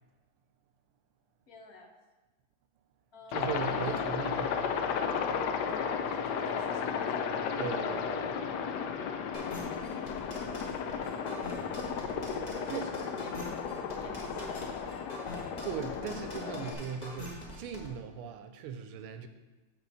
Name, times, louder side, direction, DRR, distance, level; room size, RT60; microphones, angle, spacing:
voice 1, 1.5-1.9 3.1-4.0 5.5-7.6 10.4-11.5 12.4-13.3 13.5-15.2, left 2 dB, 55° left, 3 dB, 1.1 m, -50 dB
Aircraft, 3.3-16.7, left 6 dB, 80° left, 0.9 m, -34 dB
voice 2, 3.3-4.6 7.6-8.5 12.7-12.9 15.6-19.3, right 7 dB, 85° right, 8 dB, 1.5 m, -38 dB
sound 1, 9.3-17.9, left 1 dB, 25° left, 1.2 m, -43 dB
11.0 x 4.2 x 4.2 m, 1.1 s
omnidirectional pair, 2.4 m